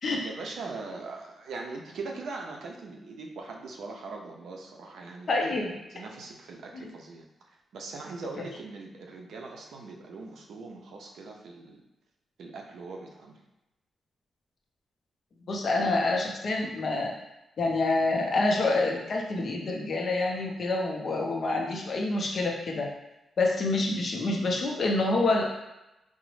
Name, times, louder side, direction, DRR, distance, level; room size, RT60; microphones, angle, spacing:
voice 1, 0.1-7.3 7.7-11.8 12.4-13.4, right 3 dB, 75° right, 1 dB, 0.4 m, -41 dB
voice 2, 5.3-5.7 6.7-6.9 15.5-17.1 17.6-22.9 23.4-25.5, left 2 dB, 40° left, 0 dB, 0.5 m, -27 dB
3.8 x 2.0 x 3.0 m, 0.94 s
wide cardioid pair, 180°, 0 cm